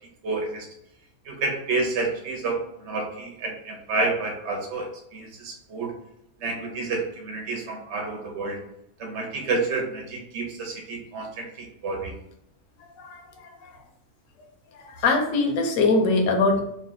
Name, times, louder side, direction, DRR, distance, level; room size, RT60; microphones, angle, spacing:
voice 1, 0.2-0.6 1.2-5.9 6.4-8.6 9.0-12.1, right 3 dB, 50° right, 0 dB, 1.1 m, -29 dB
voice 2, 13.0-13.7 14.7-16.6, left 3 dB, 65° left, 2 dB, 1.0 m, -23 dB
3.1 x 2.4 x 3.8 m, 0.79 s
omnidirectional pair, 1.7 m